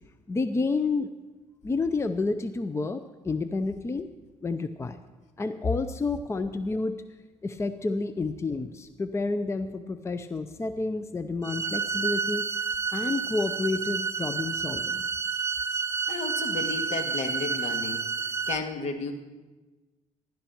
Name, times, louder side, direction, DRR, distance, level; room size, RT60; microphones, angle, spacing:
voice 1, 0.3-1.1 1.6-4.1 4.4-5.0 5.4-7.0 7.4-12.5 12.9-15.1, left 3 dB, 20° left, 11 dB, 0.6 m, -29 dB
sound 1, 11.4-18.6, right 5 dB, 25° right, 0.7 m, -30 dB
voice 2, 16.1-18.1 18.5-19.1, left 4 dB, 65° left, 7 dB, 1.7 m, -33 dB
16.0 x 11.5 x 4.6 m, 1.2 s
cardioid pair, 100°, 13 cm